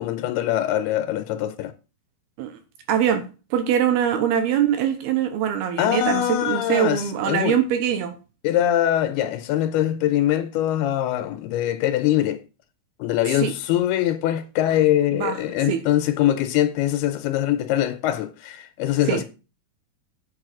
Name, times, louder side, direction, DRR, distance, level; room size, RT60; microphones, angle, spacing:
voice 1, 0.0-1.7 5.8-7.6 8.4-12.4 13.0-19.2, left 12 dB, 85° left, 2.7 m, -23 dB
voice 2, 2.9-3.2 3.5-8.1 13.4-13.5 15.2-15.4 15.7-15.8 19.1-19.2, right 9 dB, 80° right, 2.9 m, -22 dB
8.5 x 6.3 x 6.0 m
omnidirectional pair, 4.5 m